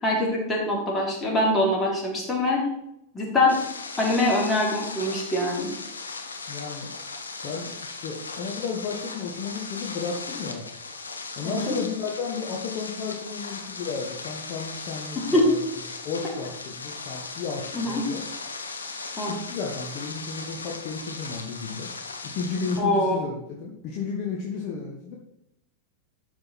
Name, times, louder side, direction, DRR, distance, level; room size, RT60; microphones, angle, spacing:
voice 1, 0.0-2.6 3.1-3.6 4.0-5.7 11.4-11.7 15.1-15.5 17.7-18.0 19.2-19.3 22.8-23.2, left 1 dB, 15° left, -2 dB, 3.3 m, -24 dB
sound 1, 3.5-22.8, left 4 dB, 75° left, 1.3 m, -37 dB
voice 2, 6.5-6.9 7.4-10.7 11.4-15.6 16.0-18.2 19.3-21.9 22.2-25.2, left 5 dB, 40° left, -1 dB, 1.5 m, -33 dB
12.0 x 5.1 x 4.3 m, 0.82 s
figure-of-eight pair, 90°, 0 cm